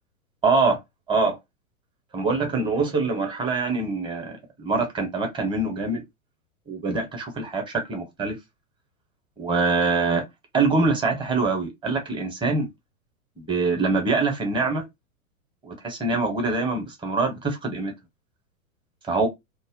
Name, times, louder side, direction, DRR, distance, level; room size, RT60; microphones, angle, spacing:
voice 1, 0.4-0.8 1.1-1.4 2.1-6.0 6.7-8.3 9.4-10.2 10.5-12.7 13.4-14.8 15.6-17.9 19.1-19.3, right 3 dB, 10° right, 0.8 m, -24 dB
2.2 x 2.0 x 3.5 m
figure-of-eight pair, 105°, 43 cm